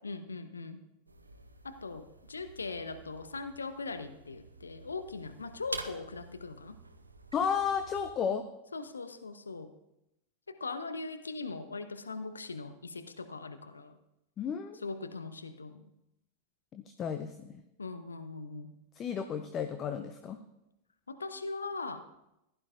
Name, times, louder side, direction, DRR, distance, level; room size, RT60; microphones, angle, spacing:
voice 1, 0.0-0.8 1.6-6.8 8.7-9.7 10.5-14.0 14.8-15.9 17.8-18.7 21.1-22.0, left 3 dB, 75° left, 9 dB, 0.7 m, -40 dB
sound 1, 1.1-8.1, right 3 dB, 80° right, 0.7 m, -48 dB
voice 2, 7.3-8.4 14.4-14.8 16.7-17.5 19.0-20.4, left 7 dB, 30° left, 8 dB, 0.7 m, -33 dB
15.5 x 11.5 x 2.6 m, 0.88 s
figure-of-eight pair, 90°, 0 cm